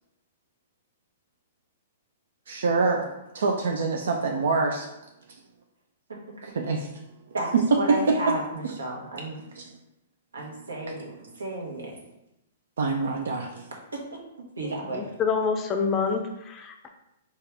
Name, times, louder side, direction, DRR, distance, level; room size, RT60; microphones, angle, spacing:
voice 1, 2.5-3.1 3.3-4.9 6.5-6.9 9.6-9.7 12.8-13.7, right 3 dB, 70° right, 2 dB, 0.4 m, -26 dB
voice 2, 6.1-6.5 7.3-9.4 10.3-11.9 13.9-14.0 14.4-15.1, right 2 dB, 90° right, -1 dB, 1.0 m, -33 dB
voice 3, 14.6-16.9, left 5 dB, 25° left, 5 dB, 0.5 m, -27 dB
4.1 x 2.3 x 3.4 m, 0.88 s
hypercardioid pair, 120°, 0 cm